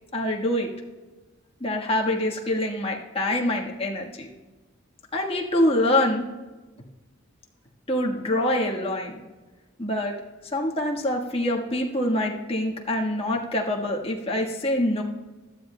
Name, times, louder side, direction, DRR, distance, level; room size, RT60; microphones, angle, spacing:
voice 1, 0.1-0.7 1.6-4.3 5.1-6.2 7.9-9.2 9.8-10.1 10.5-15.0, left 1 dB, 25° left, -1 dB, 1.4 m, -25 dB
18.0 x 12.5 x 2.2 m, 1.2 s
head